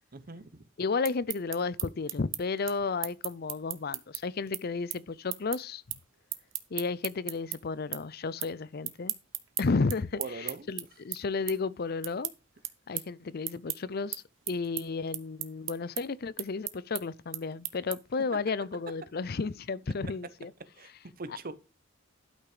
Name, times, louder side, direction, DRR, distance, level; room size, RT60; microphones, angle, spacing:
voice 1, 0.1-0.6 10.2-10.7 20.8-20.9 21.2-21.5, right 3 dB, 45° right, 0.9 m, -41 dB
voice 2, 0.8-5.8 6.7-9.1 9.6-12.3 12.9-20.5, left 4 dB, 50° left, 0.5 m, -33 dB
sound 1, 0.8-7.6 7.9-8.5 8.8-18.2, right 14 dB, 75° right, 1.0 m, -37 dB
12.0 x 5.8 x 4.9 m
head